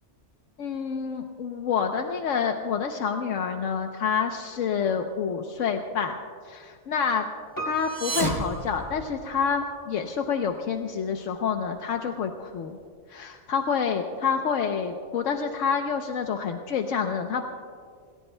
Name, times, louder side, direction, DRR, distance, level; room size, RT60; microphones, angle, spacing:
voice 1, 0.6-6.2 6.4-7.3 7.7-12.8 13.1-17.4, left 6 dB, 85° left, 4 dB, 1.1 m, -28 dB
Piano, 7.6-9.6 9.9-10.0, right 1 dB, 15° left, 2.2 m, -39 dB
sound 1, 7.7-9.6, right 2 dB, 70° right, 1.9 m, -32 dB
28.0 x 18.0 x 2.2 m, 2.1 s
omnidirectional pair, 1.3 m